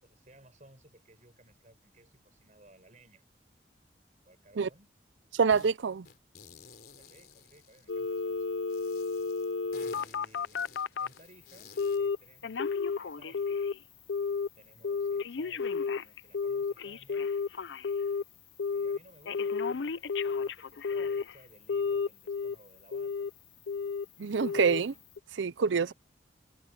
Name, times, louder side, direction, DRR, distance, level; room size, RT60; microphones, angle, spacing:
voice 1, 0.0-3.2 4.2-4.9 7.0-8.5 8.9-9.0 9.7-13.4 14.5-17.3 18.7-23.3 25.8-25.9, right 1 dB, 40° right, 6.5 m, -59 dB
voice 2, 5.3-6.1 24.2-24.9 25.3-25.9, right 5 dB, 90° right, 0.5 m, -26 dB
sound 1, 5.5-5.7 6.0-8.2 8.7-12.1, left 5 dB, 55° left, 3.9 m, -53 dB
Telephone, 7.9-11.2 11.8-12.2 12.4-13.8 14.1-14.5 14.8-18.2 18.6-19.0 19.3-21.3 21.7-22.6 22.9-23.3 23.7-24.1 24.4-24.8 25.2-25.3, left 5 dB, 80° left, 0.6 m, -32 dB
head